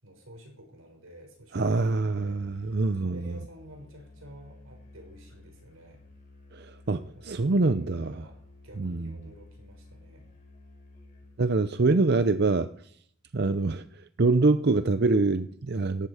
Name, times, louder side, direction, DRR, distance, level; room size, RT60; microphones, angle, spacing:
voice 1, 0.0-6.0 7.1-8.4 8.6-10.3, equal, 85° right, 6.6 m, -50 dB
Musical instrument, 1.5-11.5, left 2 dB, 35° left, 4.9 m, -53 dB
voice 2, 1.5-3.3 6.5-8.1 8.8-9.1 11.4-12.7 13.3-16.1, right 3 dB, 50° right, 0.6 m, -25 dB
18.0 x 14.5 x 4.9 m
head